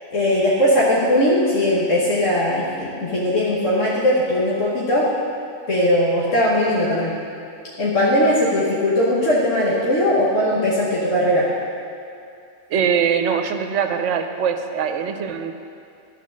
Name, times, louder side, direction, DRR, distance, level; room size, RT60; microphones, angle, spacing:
voice 1, 0.1-5.1 5.7-7.1 7.8-11.5, left 1 dB, 85° left, -7 dB, 1.6 m, -19 dB
voice 2, 12.7-15.5, right 7 dB, 75° right, 7 dB, 1.0 m, -22 dB
12.0 x 4.4 x 6.4 m, 2.5 s
omnidirectional pair, 1.3 m